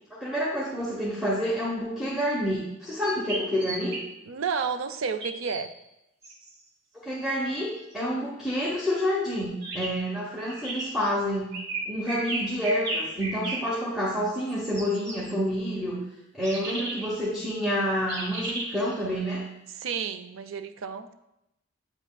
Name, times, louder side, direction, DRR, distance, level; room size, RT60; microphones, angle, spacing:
voice 1, 0.1-4.0 6.9-11.5 11.9-16.0 16.3-19.5, equal, 5° right, -5 dB, 0.8 m, -28 dB
sound 1, 3.0-4.0 5.2-5.6 6.2-6.5 9.6-9.9 10.5-10.9 11.5-13.6 14.3-15.3 16.4-17.1 18.1-19.0, right 2 dB, 55° right, 1.1 m, -34 dB
voice 2, 4.3-5.7 16.6-16.8 19.8-21.1, right 6 dB, 70° right, 11 dB, 0.4 m, -31 dB
8.1 x 5.7 x 2.2 m, 0.87 s
head